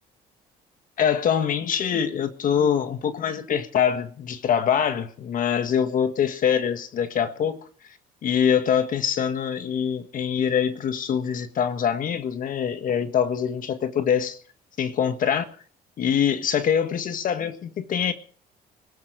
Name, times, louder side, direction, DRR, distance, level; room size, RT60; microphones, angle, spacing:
voice 1, 1.0-7.6 8.2-14.4 14.8-15.4 16.0-18.1, left 8 dB, 55° left, 1.6 m, -24 dB
21.5 x 12.5 x 5.2 m
cardioid pair, 110°, 17 cm